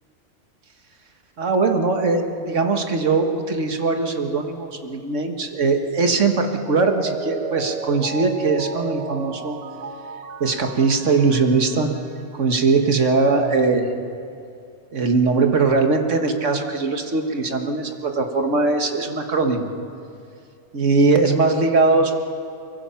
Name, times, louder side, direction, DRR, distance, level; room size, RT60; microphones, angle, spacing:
voice 1, 1.4-9.6 10.4-12.0 12.3-13.9 14.9-19.7 20.7-22.1, right 3 dB, 75° right, 4 dB, 1.9 m, -20 dB
Mallet percussion, 6.7-12.2 12.6-12.7, right 4 dB, 45° right, 0.6 m, -33 dB
23.5 x 23.5 x 5.8 m, 2.5 s
omnidirectional pair, 1.3 m